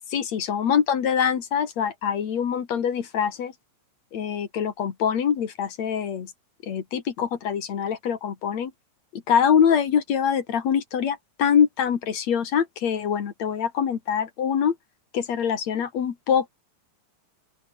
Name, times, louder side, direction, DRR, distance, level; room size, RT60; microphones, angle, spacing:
voice 1, 0.1-3.5 4.1-6.3 6.6-8.7 9.1-14.8 15.1-16.5, left 8 dB, 65° left, 3.2 m, -24 dB
open air
omnidirectional pair, 3.4 m